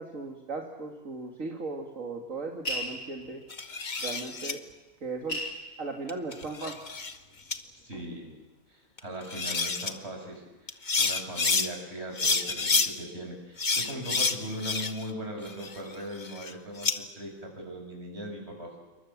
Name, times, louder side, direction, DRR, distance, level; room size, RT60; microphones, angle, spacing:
voice 1, 0.0-3.4 4.0-4.6 5.0-5.4 5.8-6.8, right 3 dB, 70° right, 2 dB, 2.6 m, -37 dB
sound 1, 2.7-3.6 4.7-4.8 5.1-6.7 7.2-7.8, left 1 dB, 85° left, 4.8 m, -36 dB
sound 2, 3.5-4.5 6.1-7.2 7.5-7.6 9.0-9.1 9.3-9.9 10.7-11.7 12.2-12.9 13.6-15.1 15.5-17.0, left 4 dB, 35° left, 1.3 m, -29 dB
voice 2, 7.7-8.3 8.7-18.8, equal, 50° right, 2 dB, 6.6 m, -39 dB
28.0 x 23.0 x 7.3 m, 1.2 s
omnidirectional pair, 1.4 m